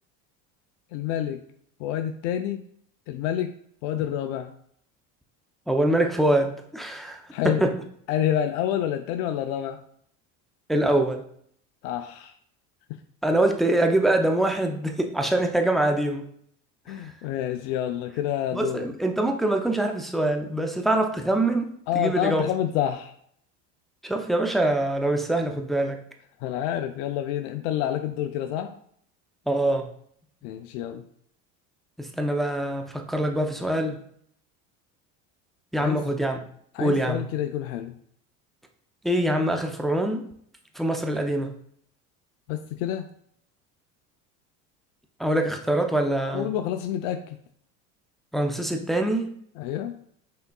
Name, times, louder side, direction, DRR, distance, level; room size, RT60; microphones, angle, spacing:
voice 1, 0.9-1.4 1.8-2.6 3.1-3.5 3.8-4.5 7.3-7.7 8.1-9.8 11.8-12.3 16.9-18.9 21.9-23.1 26.4-28.7 30.4-31.0 35.8-36.0 36.7-37.9 42.5-43.0 46.3-47.4 49.6-49.9, left 10 dB, 75° left, 6 dB, 0.5 m, -28 dB
voice 2, 5.7-7.2 7.4-7.7 10.7-11.2 13.2-16.3 18.5-22.4 24.0-26.0 29.5-29.9 32.0-34.0 35.7-36.4 36.8-37.3 39.0-40.3 40.8-41.5 45.2-46.5 48.3-49.4, right 1 dB, ahead, 4 dB, 0.5 m, -24 dB
5.6 x 3.8 x 2.3 m, 0.64 s
supercardioid pair, 95°, 39 cm